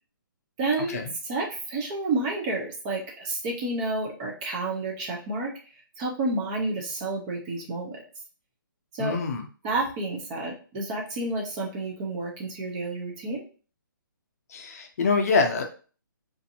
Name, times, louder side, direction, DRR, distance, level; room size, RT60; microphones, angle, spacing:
voice 1, 0.6-1.0 1.2-5.5 6.0-8.0 8.9-9.2 9.6-13.4, right 2 dB, 20° right, -1 dB, 0.5 m, -30 dB
voice 2, 9.0-9.5 14.5-15.6, left 4 dB, 45° left, 3 dB, 0.5 m, -25 dB
2.5 x 2.5 x 2.6 m, 0.38 s
hypercardioid pair, 155°, 11 cm